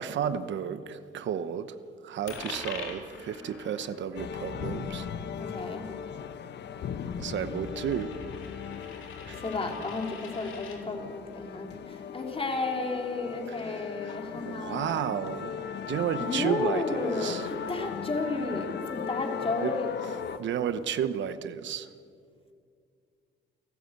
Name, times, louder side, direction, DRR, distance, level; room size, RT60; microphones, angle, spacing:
voice 1, 0.0-1.7 2.0-5.1 7.2-8.1 9.2-9.4 13.5-14.2 14.4-15.5 15.9-17.5 19.6-19.7 20.4-21.9, right 8 dB, 70° right, 11 dB, 1.0 m, -32 dB
Coin (dropping), 2.3-10.8, left 5 dB, 80° left, 3.9 m, -45 dB
sound 1, 4.2-20.4, left 7 dB, 60° left, 1.2 m, -38 dB
voice 2, 5.4-5.9 9.4-15.0 16.2-19.9, left 3 dB, 30° left, 2 dB, 3.4 m, -32 dB
28.5 x 12.5 x 8.1 m, 2.4 s
cardioid pair, 90°, 20 cm